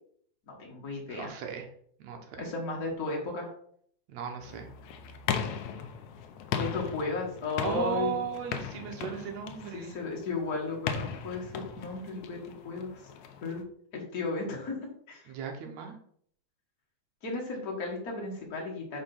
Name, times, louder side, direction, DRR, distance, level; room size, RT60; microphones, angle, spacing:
voice 1, 0.5-1.3 2.4-3.5 6.5-8.2 9.7-12.4 12.6-12.9 13.4-13.6 13.9-14.8 15.1-15.3 17.2-19.0, left 3 dB, 35° left, -2 dB, 2.1 m, -34 dB
voice 2, 1.1-1.7 2.0-2.5 4.1-4.7 7.6-10.0 15.3-16.0, right 7 dB, 70° right, 3 dB, 2.3 m, -36 dB
sound 1, 4.4-13.6, left 7 dB, 80° left, 2.1 m, -38 dB
5.2 x 5.2 x 5.6 m, 0.63 s
omnidirectional pair, 3.5 m